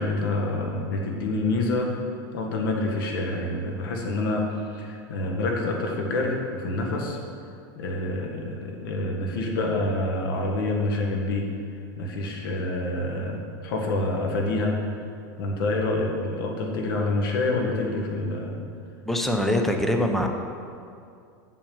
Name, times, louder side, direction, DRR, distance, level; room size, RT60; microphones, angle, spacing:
voice 1, 0.0-1.9 2.3-7.2 7.7-11.5 12.0-14.8 15.4-18.6, left 2 dB, 80° left, 1 dB, 1.7 m, -27 dB
voice 2, 19.1-20.3, left 1 dB, ahead, 3 dB, 0.7 m, -23 dB
7.0 x 5.9 x 7.1 m, 2.4 s
supercardioid pair, 130°, 11 cm